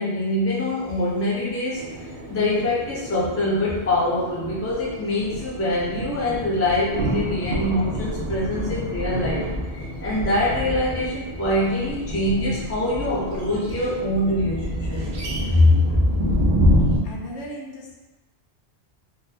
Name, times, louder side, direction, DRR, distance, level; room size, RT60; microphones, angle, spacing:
voice 1, 0.0-15.0 15.5-16.0, left 1 dB, 20° left, -6 dB, 0.4 m, -24 dB
sound 1, 1.7-16.6, equal, 45° left, 1.3 m, -41 dB
sound 2, 4.3-17.0, equal, 55° right, 0.5 m, -27 dB
voice 2, 17.0-18.0, equal, 85° left, -1 dB, 0.9 m, -36 dB
3.8 x 2.2 x 2.7 m, 1.1 s
omnidirectional pair, 1.2 m